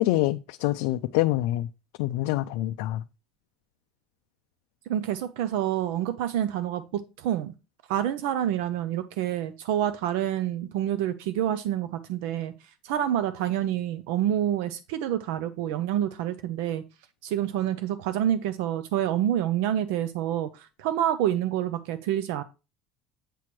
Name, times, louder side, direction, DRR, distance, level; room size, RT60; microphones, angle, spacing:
voice 1, 0.0-1.7 2.0-3.0, left 16 dB, 75° left, 0.3 m, -25 dB
voice 2, 4.9-7.5 7.9-12.5 12.8-16.8 17.2-22.4, right 11 dB, 80° right, 0.6 m, -27 dB
8.3 x 3.1 x 5.9 m
cardioid pair, 175°, 0 cm